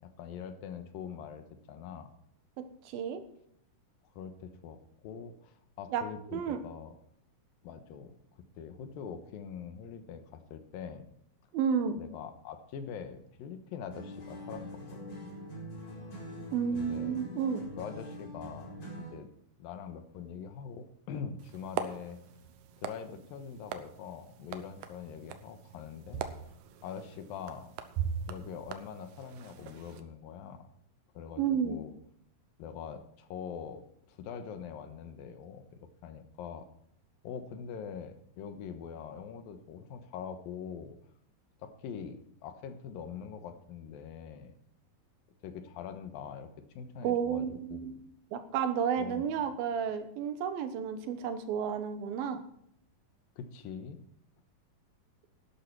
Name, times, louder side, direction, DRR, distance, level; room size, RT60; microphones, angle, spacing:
voice 1, 0.0-2.1 4.2-4.8 5.0-7.0 7.6-8.2 8.6-11.1 12.0-14.7 14.9-15.3 16.7-17.2 17.8-19.3 19.6-22.2 22.8-26.2 26.8-27.7 28.3-30.7 31.1-31.9 32.6-36.7 37.2-41.0 41.6-44.5 45.4-48.0 49.0-49.5 53.4-54.0, left 7 dB, 80° left, 8 dB, 2.8 m, -43 dB
voice 2, 2.6-3.2 5.9-6.0 6.3-6.6 11.5-12.0 16.5-17.6 31.4-31.8 47.0-48.0 48.3-52.4, right 7 dB, 90° right, 9 dB, 2.9 m, -31 dB
sound 1, 13.9-19.3, equal, 45° left, 5.7 m, -44 dB
sound 2, 21.4-30.0, right 8 dB, 70° right, 1.9 m, -41 dB
12.0 x 11.0 x 4.6 m, 0.70 s
omnidirectional pair, 4.1 m